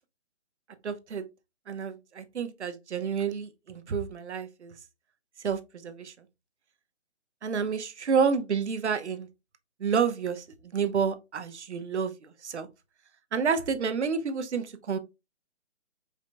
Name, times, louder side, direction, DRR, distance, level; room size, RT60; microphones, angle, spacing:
voice 1, 0.8-1.3 1.7-4.7 5.4-6.1 7.4-9.3 9.8-12.7 13.3-15.0, right 6 dB, 70° right, 0.9 m, -29 dB
5.0 x 3.9 x 2.2 m
hypercardioid pair, 170°, 35 cm